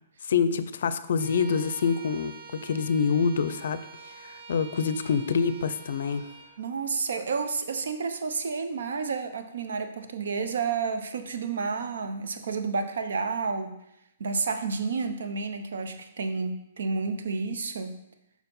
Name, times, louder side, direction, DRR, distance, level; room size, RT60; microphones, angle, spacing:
voice 1, 0.3-3.8 4.2-6.3, left 6 dB, 70° left, 14 dB, 0.4 m, -26 dB
Bowed string instrument, 1.2-6.6, right 5 dB, 50° right, 1.0 m, -46 dB
voice 2, 6.6-13.8 14.2-18.0, right 4 dB, 75° right, 8 dB, 0.7 m, -30 dB
5.9 x 4.5 x 5.3 m, 0.83 s
hypercardioid pair, 140°, 0 cm